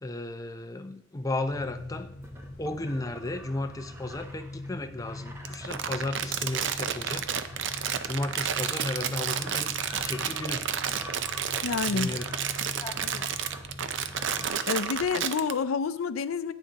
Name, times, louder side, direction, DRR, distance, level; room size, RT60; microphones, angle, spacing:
voice 1, 0.0-2.1 2.6-7.6 8.0-9.7 10.0-10.7 11.9-12.3 12.8-12.9, left 2 dB, 15° left, 0.5 m, -34 dB
sound 1, 1.5-14.5, left 2 dB, 50° left, 0.9 m, -43 dB
sound 2, 2.2-13.7 14.0-15.1, equal, 15° right, 0.8 m, -47 dB
Crumpling crinkling, 5.4-15.5, right 8 dB, 60° right, 0.5 m, -31 dB
voice 2, 11.6-12.2 13.0-13.2 14.7-16.5, left 5 dB, 85° left, 0.4 m, -29 dB
10.0 x 9.1 x 2.9 m
head